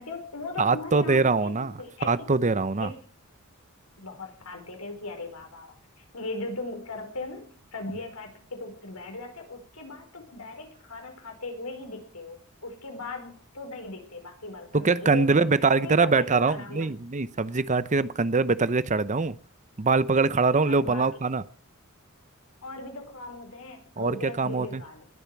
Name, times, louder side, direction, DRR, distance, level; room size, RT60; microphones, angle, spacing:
voice 1, 0.0-2.1 2.8-3.1 4.0-15.4 15.7-16.9 20.7-21.1 22.6-25.0, left 3 dB, 80° left, 4 dB, 4.9 m, -39 dB
voice 2, 0.6-1.7 2.0-2.9 14.7-19.4 19.8-21.4 24.0-24.8, right 4 dB, 35° right, 16 dB, 0.7 m, -23 dB
20.0 x 8.8 x 6.0 m, 0.43 s
head